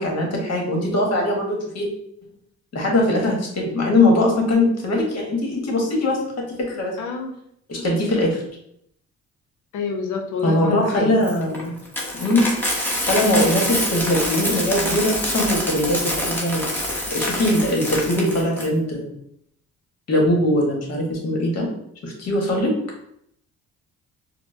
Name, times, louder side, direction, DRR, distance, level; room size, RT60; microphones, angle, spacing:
voice 1, 0.0-1.9 2.7-7.0 7.7-8.4 10.4-11.8 12.2-12.6 13.1-16.6 17.1-19.1 20.1-21.7 22.0-22.8, left 1 dB, 55° left, 0 dB, 1.3 m, -21 dB
voice 2, 7.0-7.3 9.7-11.1, left 5 dB, 80° left, 4 dB, 0.7 m, -27 dB
Coin (dropping), 11.2-18.7, left 1 dB, 5° left, 0.8 m, -26 dB
4.4 x 2.1 x 2.6 m, 0.72 s
cardioid pair, 90°, 30 cm